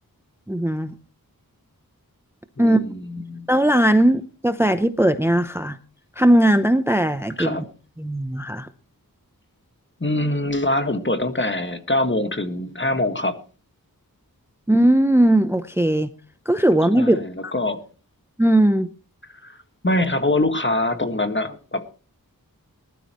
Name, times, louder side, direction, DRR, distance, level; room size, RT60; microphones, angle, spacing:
voice 1, 0.5-0.9 2.6-2.9 3.5-5.8 6.2-7.6 8.0-8.7 14.7-16.1 16.5-17.5 18.4-18.9, right 1 dB, 5° right, 11 dB, 0.7 m, -18 dB
voice 2, 2.6-3.5 7.4-7.6 10.0-13.4 17.0-17.8 19.4-19.6 19.8-21.9, left 1 dB, 30° left, 8 dB, 1.7 m, -24 dB
20.0 x 12.5 x 3.0 m, 0.37 s
wide cardioid pair, 60°, 36 cm